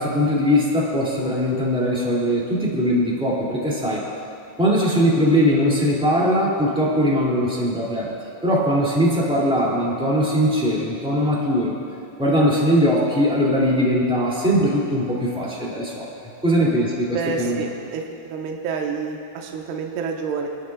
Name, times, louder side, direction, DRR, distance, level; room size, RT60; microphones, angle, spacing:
voice 1, 0.0-4.0 4.6-8.1 8.4-11.8 12.2-16.1 16.4-17.6, equal, ahead, -5 dB, 1.6 m, -20 dB
voice 2, 17.1-20.5, right 5 dB, 80° right, 1 dB, 2.8 m, -28 dB
25.0 x 12.0 x 2.4 m, 2.7 s
omnidirectional pair, 4.9 m